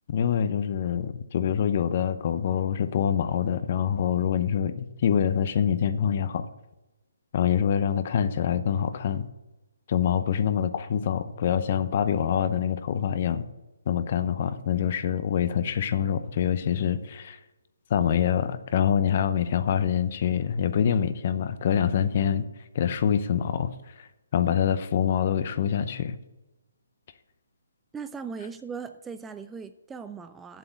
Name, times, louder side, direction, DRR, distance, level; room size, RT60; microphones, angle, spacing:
voice 1, 0.1-6.5 7.3-9.3 9.9-13.4 13.9-17.4 17.9-22.4 22.7-26.2, left 8 dB, 45° left, 11 dB, 0.7 m, -25 dB
voice 2, 27.9-30.6, right 5 dB, 10° right, 10 dB, 0.3 m, -38 dB
7.6 x 7.0 x 7.9 m, 1.0 s
hypercardioid pair, 150°, 0 cm